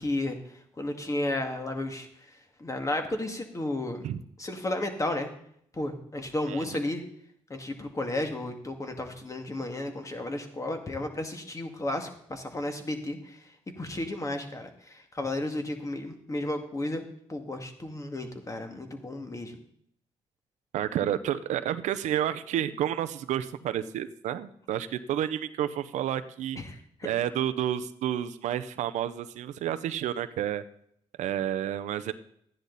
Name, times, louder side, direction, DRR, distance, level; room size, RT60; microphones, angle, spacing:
voice 1, 0.0-4.1 4.4-5.3 5.7-7.0 7.5-13.5 13.8-17.0 17.3-19.6 26.6-27.1, left 1 dB, 25° left, 5 dB, 2.1 m, -33 dB
voice 2, 20.7-26.6 27.0-30.6 31.2-32.1, right 11 dB, 85° right, 12 dB, 0.7 m, -30 dB
13.5 x 10.0 x 4.0 m, 0.68 s
cardioid pair, 80°, 12 cm